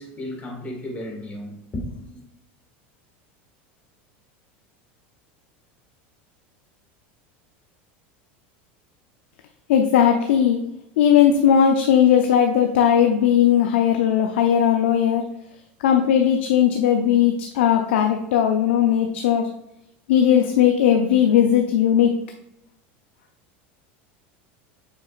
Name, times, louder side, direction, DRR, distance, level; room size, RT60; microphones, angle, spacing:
voice 1, 0.0-2.2, left 1 dB, 25° left, 1.8 m, -34 dB
voice 2, 9.7-10.6 11.0-15.3 15.8-19.5 20.1-22.2, left 9 dB, 85° left, 0.6 m, -18 dB
7.3 x 6.0 x 2.5 m
supercardioid pair, 130°, 6 cm